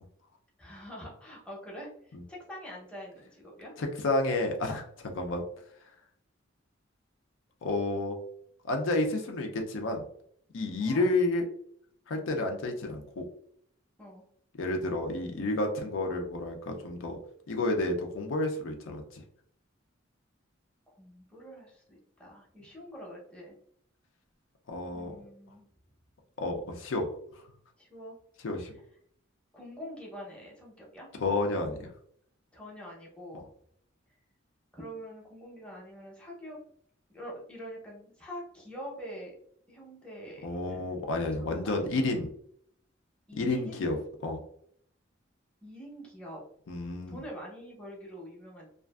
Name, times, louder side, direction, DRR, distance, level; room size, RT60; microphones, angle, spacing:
voice 1, 0.6-3.7 10.8-11.0 14.0-14.2 21.0-23.5 24.9-25.7 27.8-28.1 29.5-31.1 32.5-33.5 34.7-36.6 37.1-39.4 39.7-41.0 41.3-41.7 43.3-44.0 45.6-46.4 47.1-48.7, equal, 5° left, -3 dB, 0.6 m, -45 dB
voice 2, 3.8-5.4 7.6-8.2 8.7-10.0 10.5-11.4 12.1-13.3 14.5-17.2 17.5-19.2 24.7-25.1 26.4-27.1 28.4-28.7 31.2-31.9 33.3-33.4 40.4-42.3 43.4-44.0 44.2-44.4 46.7-47.2, left 2 dB, 80° left, 3 dB, 0.5 m, -30 dB
2.5 x 2.4 x 2.2 m, 0.66 s
head